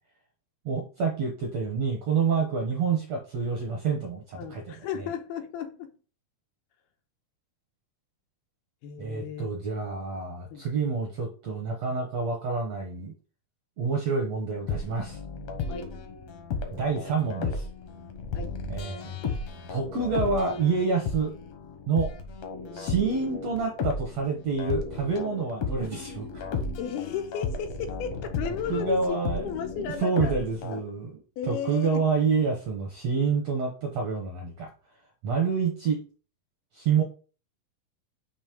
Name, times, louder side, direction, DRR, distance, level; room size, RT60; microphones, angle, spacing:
voice 1, 0.6-4.7 9.0-13.1 13.8-15.2 16.7-17.6 18.7-19.2 19.7-21.3 21.9-22.1 22.7-26.5 28.7-31.2 31.5-34.7 35.2-36.0 36.7-37.0, right 5 dB, 75° right, 1.5 m, -28 dB
voice 2, 4.4-5.9 8.8-9.5 10.5-10.6 15.7-15.9 18.3-18.5 26.8-30.4 30.7-30.8 31.4-32.1, left 8 dB, 90° left, 2.7 m, -34 dB
sound 1, 14.5-30.8, left 4 dB, 70° left, 1.5 m, -34 dB
7.3 x 3.0 x 5.0 m
omnidirectional pair, 4.4 m